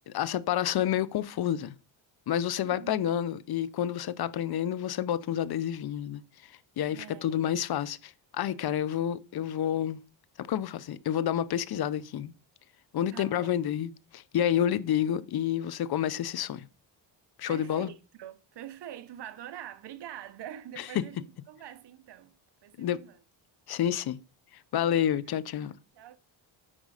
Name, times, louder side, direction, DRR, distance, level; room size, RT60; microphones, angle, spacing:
voice 1, 0.0-1.8 2.3-10.0 10.4-12.3 12.9-16.7 17.4-17.9 20.8-20.9 22.8-23.0 23.7-24.2 24.7-25.7, left 10 dB, 55° left, 0.7 m, -29 dB
voice 2, 2.6-3.1 6.9-7.5 8.5-9.1 13.1-13.6 17.5-22.3 22.6-23.2 24.9-25.2 25.9-26.2, right 11 dB, 60° right, 1.0 m, -45 dB
8.8 x 5.3 x 4.9 m
cardioid pair, 115°, 46 cm